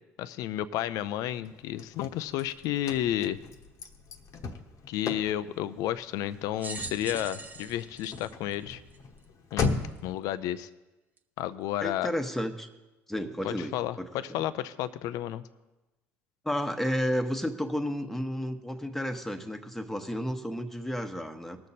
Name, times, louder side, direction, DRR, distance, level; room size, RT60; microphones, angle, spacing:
voice 1, 0.2-3.4 4.9-8.8 9.5-10.7 11.4-12.1 13.4-15.4, left 12 dB, 70° left, 14 dB, 0.5 m, -32 dB
Car / Slam, 1.4-10.1, left 4 dB, 55° left, 1.1 m, -37 dB
sound 1, 6.6-9.2 9.9-10.0 11.2-11.3, right 4 dB, 25° right, 1.0 m, -42 dB
voice 2, 11.8-12.7 13.1-14.4 16.4-21.6, equal, 5° left, 6 dB, 1.2 m, -32 dB
19.5 x 6.7 x 4.2 m, 1.1 s
supercardioid pair, 80°, 6 cm